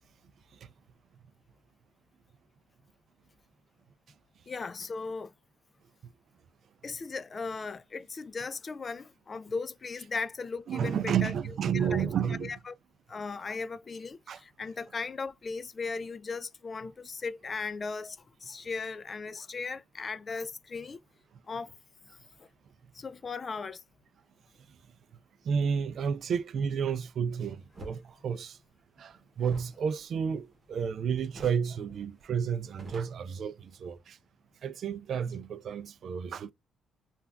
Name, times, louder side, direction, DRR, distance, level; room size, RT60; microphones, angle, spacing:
voice 1, 4.5-5.3 6.8-11.3 11.7-12.1 12.4-12.7 13.1-21.0 21.5-21.7 22.4-22.5 22.9-23.8, left 4 dB, 35° left, 0.3 m, -37 dB
voice 2, 10.7-12.6 14.3-14.4 25.4-28.6 29.0-34.2 34.6-36.5, right 7 dB, 60° right, 0.4 m, -31 dB
sound 1, 27.7-28.0 29.4-30.9 31.3-31.7 32.0-32.1 32.4-34.0, right 1 dB, 35° right, 0.9 m, -49 dB
3.3 x 2.4 x 2.2 m
cardioid pair, 90°, 0 cm